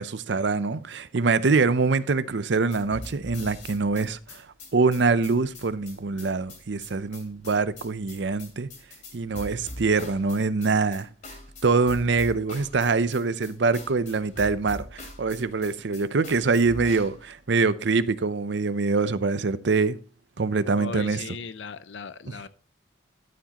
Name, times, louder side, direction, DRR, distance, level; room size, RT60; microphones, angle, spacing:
voice 1, 0.0-4.5 4.7-8.7 9.1-11.1 11.6-20.0 20.4-21.2, right 4 dB, 65° right, 0.6 m, -24 dB
sound 1, 2.7-17.3, left 1 dB, 40° left, 2.9 m, -42 dB
voice 2, 20.8-22.5, left 4 dB, 70° left, 0.5 m, -37 dB
12.5 x 7.3 x 2.9 m
head